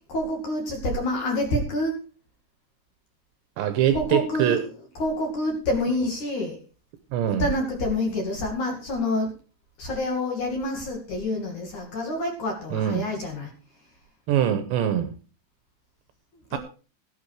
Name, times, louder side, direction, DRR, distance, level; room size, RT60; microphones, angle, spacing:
voice 1, 0.1-2.0 3.9-4.7 5.0-6.6 7.3-9.3 9.8-13.5 16.5-16.6, left 1 dB, 45° left, 1 dB, 3.3 m, -27 dB
voice 2, 3.6-4.6 7.1-7.4 12.7-13.0 14.3-15.1 16.5-16.6, right 10 dB, 75° right, 10 dB, 3.1 m, -23 dB
17.5 x 8.4 x 4.8 m, 0.37 s
omnidirectional pair, 5.4 m